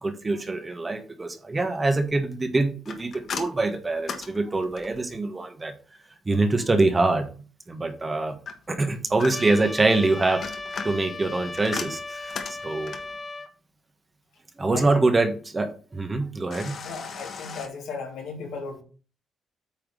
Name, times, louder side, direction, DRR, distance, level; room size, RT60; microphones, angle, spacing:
voice 1, 0.0-5.7 6.2-7.3 7.7-8.3 8.7-10.4 10.8-12.9 14.6-16.8, right 2 dB, 25° right, 7 dB, 1.4 m, -24 dB
sound 1, 2.8-5.1 8.5-9.7 10.2-13.2 16.5-17.7, left 6 dB, 55° left, 1.3 m, -37 dB
Trumpet, 9.3-13.5, left 3 dB, 20° left, 1.1 m, -37 dB
voice 2, 16.8-18.8, left 4 dB, 80° left, 0 dB, 3.0 m, -36 dB
8.8 x 3.6 x 6.3 m, 0.37 s
cardioid pair, 90°, 0 cm